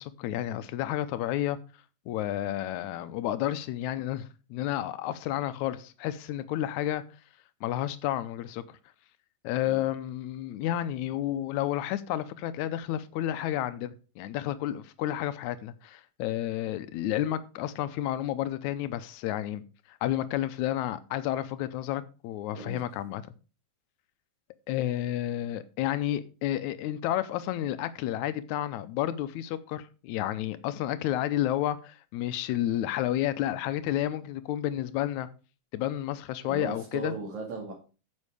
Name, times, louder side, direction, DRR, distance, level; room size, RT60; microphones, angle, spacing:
voice 1, 0.0-1.6 2.1-7.0 7.6-8.8 9.4-19.6 19.9-23.2 24.7-35.3 35.7-37.1, left 12 dB, 90° left, 2.1 m, -31 dB
voice 2, 22.5-22.8 36.4-37.7, right 3 dB, 80° right, 3.8 m, -37 dB
9.8 x 7.5 x 4.9 m
omnidirectional pair, 3.3 m